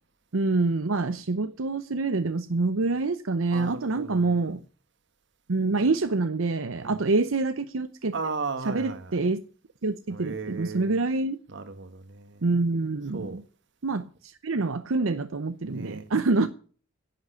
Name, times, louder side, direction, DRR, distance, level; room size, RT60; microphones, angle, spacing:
voice 1, 0.3-4.6 5.5-8.1 8.7-9.4 9.8-11.4 12.4-13.4 13.8-16.5, right 3 dB, 85° right, 0.8 m, -26 dB
voice 2, 3.5-4.6 6.8-7.0 8.1-9.2 10.1-11.0 11.5-12.4 13.1-13.4 15.6-16.1 16.3-16.5, right 4 dB, 60° right, 1.6 m, -36 dB
11.0 x 8.1 x 9.8 m
head